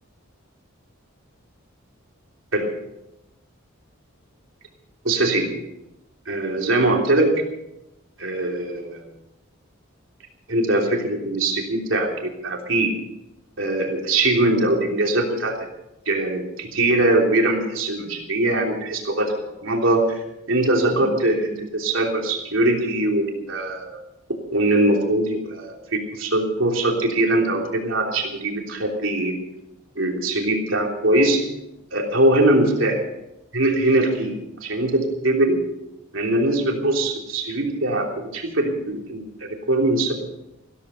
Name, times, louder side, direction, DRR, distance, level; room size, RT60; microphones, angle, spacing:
voice 1, 5.0-5.5 6.3-7.3 8.2-9.0 10.5-12.9 13.6-15.7 16.0-19.4 19.6-20.2 20.5-24.0 24.5-29.4 29.9-31.4 31.9-33.0 33.5-34.4 34.6-35.6 36.1-40.3, right 1 dB, 70° right, 1 dB, 3.3 m, -21 dB
15.5 x 14.0 x 5.6 m, 0.89 s
head